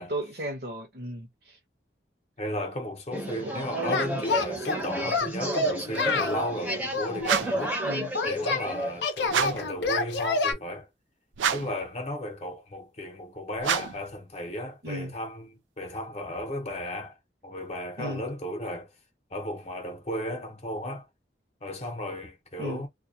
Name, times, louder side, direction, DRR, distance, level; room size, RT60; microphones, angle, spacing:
voice 1, 0.0-1.6 3.4-3.5 7.8-8.1 14.8-15.1 18.0-18.2 22.6-22.9, right 1 dB, 55° right, 0.7 m, -35 dB
voice 2, 2.4-7.8 8.3-10.9 11.5-17.2 17.4-18.9 19.3-21.1 21.6-22.9, equal, 35° left, 0.7 m, -35 dB
sound 1, 3.1-9.1, right 1 dB, 10° right, 0.6 m, -32 dB
Singing, 3.9-4.8 5.1-6.4 6.9-8.6 9.0-10.5, left 3 dB, 75° left, 0.5 m, -28 dB
sound 2, 7.2-7.7 9.3-9.7 11.3-11.8 13.6-14.1, right 8 dB, 90° right, 0.3 m, -28 dB
2.2 x 2.2 x 2.6 m
head